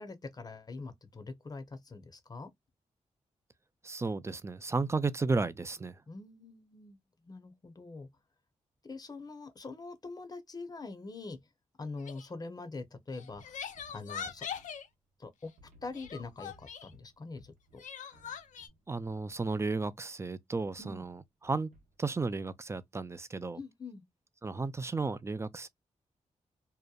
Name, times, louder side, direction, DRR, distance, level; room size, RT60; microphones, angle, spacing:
voice 1, 0.0-2.5 6.1-7.0 7.2-8.1 8.8-11.4 11.8-14.5 15.2-15.5 15.8-17.5 20.8-21.0 23.5-24.0, left 3 dB, 30° left, 0.7 m, -44 dB
voice 2, 3.8-6.0 18.9-21.7 22.0-23.6 24.4-25.7, right 3 dB, 20° right, 0.3 m, -33 dB
Crying sobbing, 12.0-12.3 13.1-14.9 15.9-16.9 17.8-18.7, left 7 dB, 80° left, 0.5 m, -42 dB
sound 1, 13.3-15.3 15.6-20.0 20.5-22.5, equal, 90° right, 0.8 m, -63 dB
2.8 x 2.1 x 2.3 m
cardioid pair, 70°, 13 cm